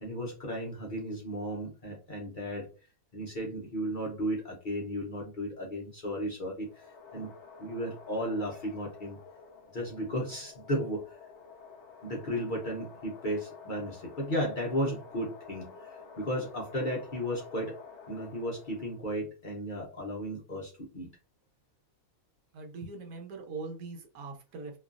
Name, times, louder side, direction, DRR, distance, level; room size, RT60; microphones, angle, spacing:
voice 1, 0.0-2.7 3.1-6.8 7.1-7.3 7.6-9.2 9.7-11.2 12.0-17.7 18.1-21.1, equal, 50° left, -2 dB, 0.6 m, -34 dB
sound 1, 6.6-19.1, left 5 dB, 90° left, 0.6 m, -50 dB
voice 2, 22.5-24.8, right 3 dB, 70° right, 2 dB, 1.2 m, -41 dB
3.0 x 2.4 x 2.4 m, 0.34 s
omnidirectional pair, 1.7 m